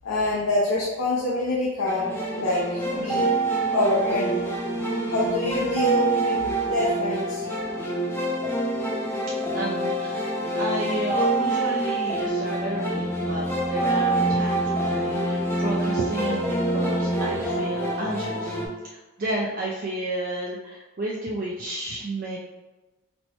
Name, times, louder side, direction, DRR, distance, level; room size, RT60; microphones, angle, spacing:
voice 1, 0.0-3.3 3.7-4.5 5.1-7.4, left 1 dB, 90° left, -5 dB, 0.6 m, -26 dB
sound 1, 1.8-18.7, right 2 dB, 10° left, 0.5 m, -26 dB
voice 2, 9.5-10.3 10.6-18.5 18.8-22.4, right 1 dB, 40° right, -4 dB, 0.4 m, -32 dB
4.2 x 2.1 x 2.9 m, 1.1 s
head